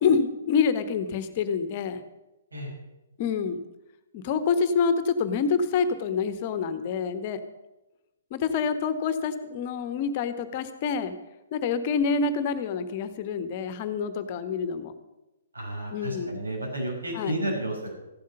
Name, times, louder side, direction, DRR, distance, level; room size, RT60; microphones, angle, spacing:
voice 1, 0.0-2.0 3.2-3.6 4.1-7.4 8.3-11.1 11.5-14.9 15.9-16.4 17.1-17.3, left 5 dB, 35° left, 11 dB, 1.2 m, -27 dB
voice 2, 15.5-17.9, right 1 dB, 75° right, -1 dB, 5.8 m, -32 dB
15.0 x 11.5 x 5.5 m, 0.98 s
figure-of-eight pair, 125°, 0 cm